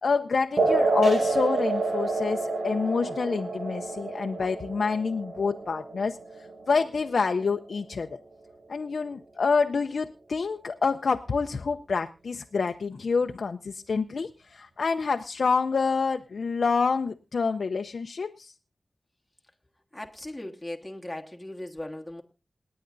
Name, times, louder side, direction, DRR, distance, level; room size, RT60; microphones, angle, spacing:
voice 1, 0.0-6.2 6.7-8.2 8.7-18.5, left 5 dB, 85° left, 5 dB, 0.6 m, -27 dB
sound 1, 0.6-7.6, right 3 dB, 70° right, 2.0 m, -29 dB
voice 2, 19.9-22.2, left 1 dB, 10° left, 2 dB, 1.4 m, -38 dB
28.0 x 9.6 x 2.6 m, 0.29 s
wide cardioid pair, 85°, 0 cm